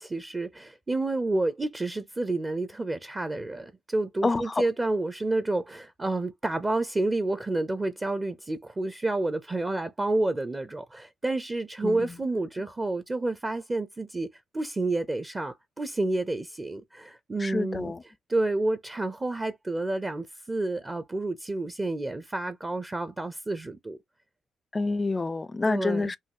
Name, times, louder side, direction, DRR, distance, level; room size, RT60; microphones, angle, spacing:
voice 1, 0.0-14.3 14.5-17.9 18.3-24.0 25.7-26.1, right 2 dB, 20° right, 0.6 m, -29 dB
voice 2, 4.2-4.5 11.8-12.1 17.4-18.0 24.7-26.2, left 3 dB, 25° left, 0.5 m, -28 dB
5.6 x 2.4 x 2.9 m
cardioid pair, 90°, 0 cm